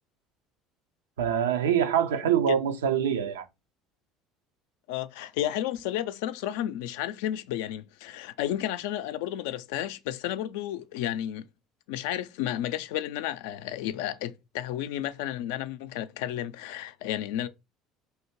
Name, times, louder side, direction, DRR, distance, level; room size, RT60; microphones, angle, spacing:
voice 1, 1.2-3.5, right 9 dB, 90° right, 0.5 m, -25 dB
voice 2, 4.9-11.4 11.9-17.5, left 12 dB, 75° left, 0.4 m, -32 dB
3.2 x 2.8 x 4.5 m
hypercardioid pair, 70°, 0 cm